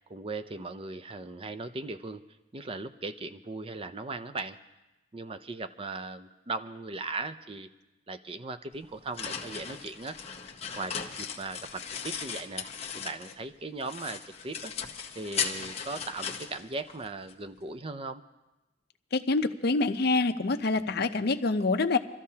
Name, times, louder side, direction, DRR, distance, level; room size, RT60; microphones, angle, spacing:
voice 1, 0.1-2.2 2.5-4.6 5.1-7.7 8.1-10.2 10.7-12.7 12.9-14.7 15.1-18.2, right 3 dB, 30° right, 10 dB, 0.5 m, -38 dB
sound 1, 8.7-13.5 13.8-17.3, left 6 dB, 35° left, 0.9 m, -37 dB
voice 2, 19.1-22.0, left 3 dB, 55° left, 8 dB, 0.6 m, -26 dB
26.0 x 13.5 x 2.8 m, 1.0 s
head